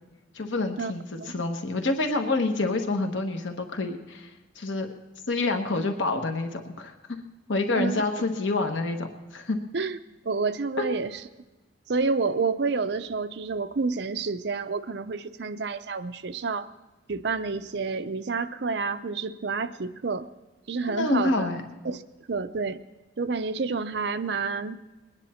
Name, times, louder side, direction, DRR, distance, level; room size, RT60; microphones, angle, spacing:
voice 1, 0.3-4.3 4.6-4.9 5.3-6.9 7.5-9.6 10.8-10.9 20.9-21.6, left 2 dB, 90° left, 4 dB, 1.2 m, -27 dB
voice 2, 10.2-11.2 11.9-16.7 17.1-20.3 20.7-21.5 21.8-22.0 22.3-22.8 23.2-24.8, right 4 dB, 65° right, 11 dB, 0.6 m, -29 dB
21.5 x 9.8 x 4.3 m, 1.2 s
head